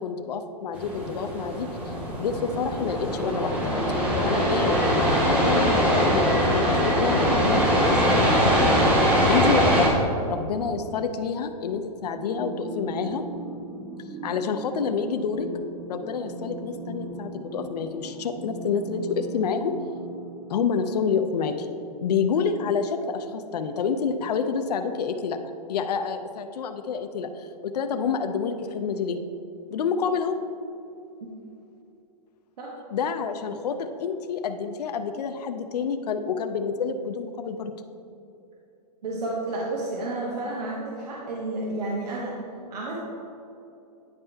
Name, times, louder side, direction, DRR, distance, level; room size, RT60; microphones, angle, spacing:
voice 1, 0.0-1.9 2.2-3.7 4.2-8.8 9.3-13.3 14.2-15.5 15.9-19.7 20.5-21.7 22.0-25.4 25.7-29.2 29.7-30.4 32.9-37.7, left 6 dB, 75° left, 7 dB, 0.5 m, -28 dB
sound 1, 0.7-9.9, equal, 5° right, 0.4 m, -22 dB
sound 2, 12.1-21.1, right 2 dB, 25° right, 1.4 m, -38 dB
voice 2, 39.0-42.4 42.7-43.0, right 2 dB, 80° right, -3 dB, 1.1 m, -31 dB
9.7 x 4.4 x 3.3 m, 2.7 s
hypercardioid pair, 170°, 21 cm